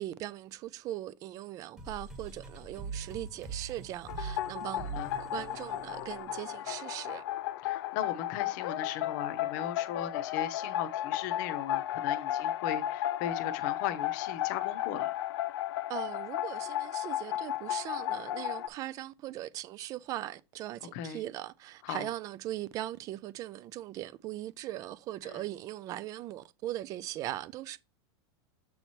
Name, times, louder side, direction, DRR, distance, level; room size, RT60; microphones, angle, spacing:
voice 1, 0.0-7.2 15.9-27.8, right 14 dB, 25° right, 0.4 m, -40 dB
sound 1, 1.8-7.1, right 5 dB, 5° right, 1.3 m, -43 dB
sound 2, 4.1-18.7, left 12 dB, 70° left, 0.5 m, -34 dB
voice 2, 7.6-15.2 20.9-21.2 21.8-22.1 25.2-25.4, left 10 dB, 45° left, 0.8 m, -38 dB
7.8 x 3.1 x 4.3 m
supercardioid pair, 160°, 14 cm